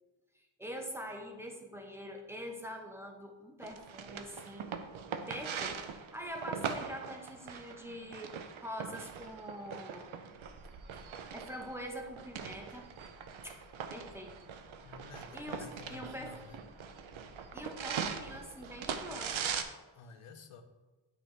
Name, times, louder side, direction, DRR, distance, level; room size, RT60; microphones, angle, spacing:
voice 1, 0.3-4.7 5.3-10.1 11.3-12.8 13.4-13.6 13.9-14.5 15.3-16.4 17.5-19.4, equal, 5° right, 2 dB, 0.9 m, -44 dB
sound 1, 3.6-19.6, right 7 dB, 70° right, 0.6 m, -41 dB
sound 2, 10.5-19.2, left 3 dB, 10° left, 1.3 m, -60 dB
voice 2, 14.8-16.6 19.9-20.6, left 5 dB, 85° left, 7 dB, 0.8 m, -52 dB
8.6 x 4.9 x 3.3 m, 1.2 s
wide cardioid pair, 80°, 50 cm